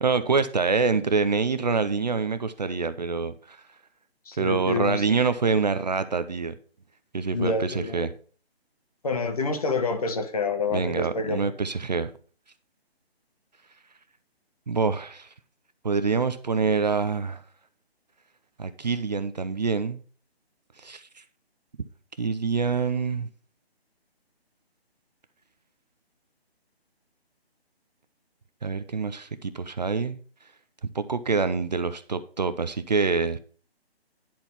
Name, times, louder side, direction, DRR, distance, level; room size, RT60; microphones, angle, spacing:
voice 1, 0.0-3.6 4.4-6.5 7.1-8.1 10.7-12.1 14.7-15.3 15.8-17.4 18.6-20.0 20.8-21.2 22.2-23.3 28.6-30.2 30.9-33.4, right 4 dB, 40° right, 0.6 m, -26 dB
voice 2, 4.3-5.0 7.3-8.1 9.0-11.5, left 3 dB, 35° left, 1.0 m, -27 dB
10.5 x 4.5 x 5.4 m
hypercardioid pair, 170°, 32 cm